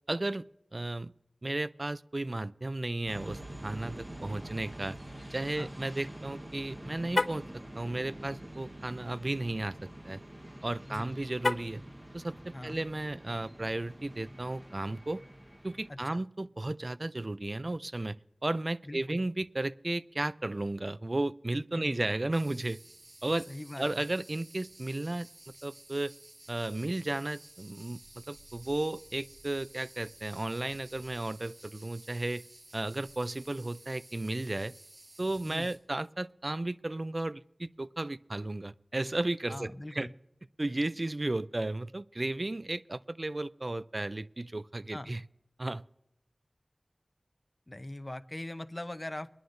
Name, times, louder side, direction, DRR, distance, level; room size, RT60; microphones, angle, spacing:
voice 1, 0.1-0.4 0.7-1.1 1.4-5.0 5.3-10.2 10.6-11.8 12.1-15.2 15.6-22.8 23.2-23.5 23.8-25.3 25.6-26.1 26.5-32.5 32.7-34.7 35.2-40.1 40.6-45.2 45.6-45.8, right 2 dB, 50° right, 15 dB, 0.3 m, -34 dB
sound 1, 3.1-15.9, right 1 dB, 20° right, 1.1 m, -46 dB
Car, 7.1-7.5 11.4-11.9, left 2 dB, 75° left, 0.3 m, -30 dB
voice 2, 15.9-16.2 18.8-19.2 21.7-22.0 23.5-24.1 35.5-35.7 39.5-40.1 44.9-45.2 47.7-49.3, left 1 dB, 30° left, 9 dB, 0.7 m, -41 dB
sound 2, 22.3-35.8, right 1 dB, 70° right, 4.1 m, -54 dB
22.5 x 11.0 x 2.6 m, 0.81 s
wide cardioid pair, 50°, 0 cm